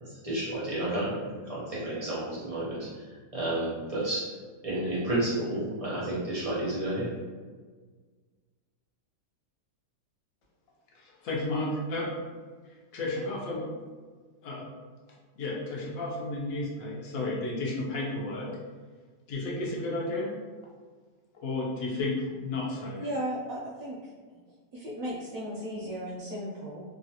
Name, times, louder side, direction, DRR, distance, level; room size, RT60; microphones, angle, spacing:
voice 1, 0.0-3.1 3.3-4.3 4.6-7.1, right 1 dB, 50° right, -9 dB, 0.4 m, -31 dB
voice 2, 10.9-12.1 12.9-13.7 14.4-14.7 15.4-18.5 19.3-20.3 21.4-23.0, left 2 dB, 60° left, -3 dB, 1.0 m, -32 dB
voice 3, 23.0-24.0 24.7-26.8, equal, 70° right, -5 dB, 0.8 m, -35 dB
3.1 x 2.4 x 2.8 m, 1.5 s
omnidirectional pair, 1.9 m